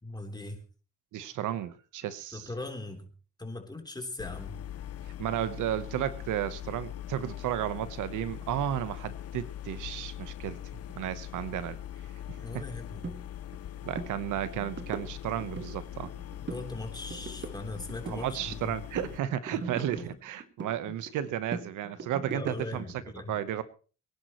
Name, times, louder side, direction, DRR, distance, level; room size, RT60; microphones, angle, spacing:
voice 1, 0.0-0.6 2.3-3.1 3.4-4.6 12.4-13.0 16.5-18.8 19.5-20.0 22.3-23.4, left 2 dB, 15° left, 4 dB, 3.6 m, -40 dB
voice 2, 1.1-2.5 5.2-10.6 11.0-11.8 12.3-12.4 13.8-16.1 18.0-22.8 23.3-23.6, right 11 dB, 85° right, 13 dB, 1.2 m, -33 dB
sound 1, 4.2-19.2, left 11 dB, 55° left, 0.7 m, -42 dB
sound 2, 13.0-13.2 13.5-13.7 13.9-14.1 14.5-15.7 16.0-16.7 16.9-18.7 19.0-20.7 21.1-22.9, right 4 dB, 35° right, 2.2 m, -40 dB
24.5 x 10.5 x 3.1 m, 0.37 s
cardioid pair, 90°, 30 cm